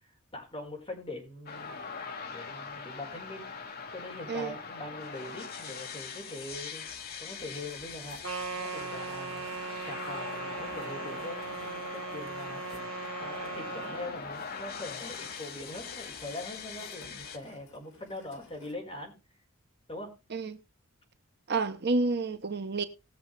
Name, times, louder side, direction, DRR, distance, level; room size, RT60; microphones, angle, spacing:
voice 1, 0.3-1.8 2.3-3.4 3.9-6.8 7.2-8.2 8.5-9.4 9.8-12.8 13.2-19.1 19.9-20.2, left 1 dB, 25° left, 4.6 m, -42 dB
sound 1, 1.5-17.4, left 5 dB, 45° left, 1.4 m, -42 dB
sound 2, 7.4-18.7, left 2 dB, 70° left, 2.9 m, -55 dB
sound 3, 8.2-14.2, right 4 dB, 75° right, 1.3 m, -39 dB
voice 2, 21.5-22.8, right 3 dB, 50° right, 0.9 m, -29 dB
19.5 x 7.0 x 3.3 m
head